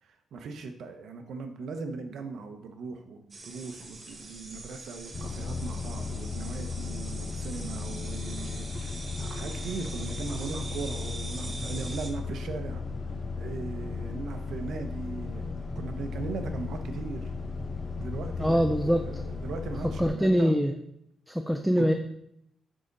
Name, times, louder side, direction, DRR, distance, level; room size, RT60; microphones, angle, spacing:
voice 1, 0.0-12.8 13.3-17.3 17.9-20.5 21.8-21.9, right 4 dB, 65° right, 6 dB, 0.8 m, -39 dB
sound 1, 3.3-12.1, right 2 dB, 25° right, 1.0 m, -43 dB
sound 2, 5.1-20.1, left 4 dB, 25° left, 0.8 m, -35 dB
voice 2, 18.4-19.1 20.0-20.7 21.3-21.9, equal, ahead, 5 dB, 0.4 m, -23 dB
7.6 x 4.9 x 4.0 m, 0.76 s
cardioid pair, 165°, 0 cm